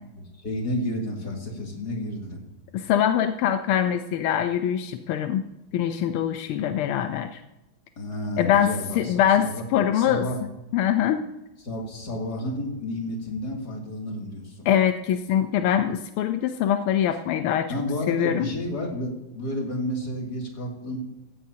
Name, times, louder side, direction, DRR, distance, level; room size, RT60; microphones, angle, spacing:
voice 1, 0.2-2.4 8.0-9.6 9.9-10.4 11.6-14.7 17.7-21.0, left 1 dB, 50° left, -1 dB, 3.1 m, -31 dB
voice 2, 2.7-5.5 5.7-7.4 8.4-10.3 10.7-11.2 14.7-17.7 18.1-18.5, left 10 dB, 85° left, 8 dB, 1.6 m, -23 dB
16.0 x 15.0 x 2.8 m, 0.95 s
omnidirectional pair, 2.3 m